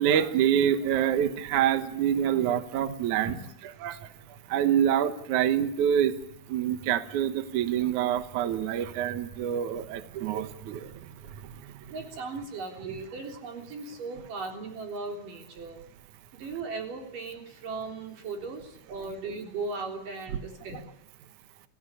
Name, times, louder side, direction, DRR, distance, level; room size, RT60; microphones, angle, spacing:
voice 1, 0.0-3.4 3.8-6.1 6.5-11.9, right 10 dB, 75° right, 10 dB, 1.8 m, -26 dB
voice 2, 11.9-15.8 16.3-20.8, right 3 dB, 50° right, 3 dB, 5.0 m, -37 dB
27.0 x 16.0 x 10.0 m, 0.82 s
omnidirectional pair, 5.2 m